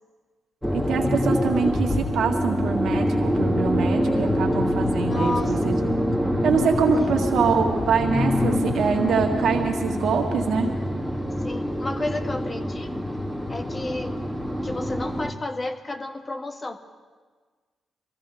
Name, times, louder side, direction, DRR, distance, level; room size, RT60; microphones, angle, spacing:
sound 1, 0.6-15.3, equal, ahead, 2.7 m, -25 dB
voice 1, 0.7-5.8 6.4-10.7, right 6 dB, 75° right, 3 dB, 1.8 m, -24 dB
voice 2, 5.0-5.8 6.9-7.2 11.4-13.0 13.5-14.2 14.6-16.8, left 2 dB, 30° left, 6 dB, 1.4 m, -32 dB
23.0 x 15.0 x 3.5 m, 1.5 s
supercardioid pair, 50°, 0 cm